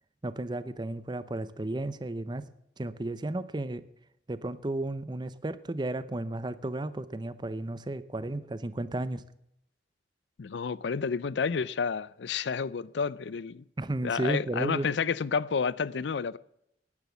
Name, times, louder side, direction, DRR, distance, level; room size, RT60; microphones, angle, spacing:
voice 1, 0.2-2.5 2.8-3.8 4.3-9.2 13.8-14.9, right 2 dB, 25° right, 0.6 m, -33 dB
voice 2, 10.4-13.6 14.0-16.4, left 5 dB, 90° left, 0.5 m, -30 dB
10.5 x 9.8 x 7.2 m
head